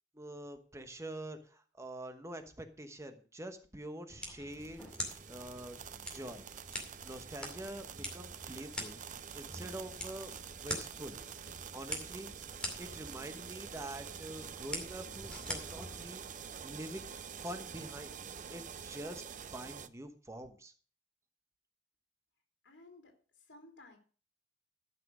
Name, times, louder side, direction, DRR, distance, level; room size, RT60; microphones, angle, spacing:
voice 1, 0.1-4.8 5.3-5.8 6.1-6.5 7.0-10.3 10.6-11.2 11.7-16.3 16.6-17.1 17.4-18.1 18.5-19.2 19.5-20.7, right 1 dB, 15° right, 7 dB, 1.1 m, -45 dB
sound 1, 4.1-16.1, left 1 dB, 5° left, 2.4 m, -45 dB
sound 2, 4.5-19.9, right 7 dB, 45° right, 0.6 m, -47 dB
voice 2, 22.6-23.1 23.5-24.0, left 2 dB, 90° left, 2 dB, 3.1 m, -56 dB
12.5 x 6.0 x 6.2 m, 0.41 s
head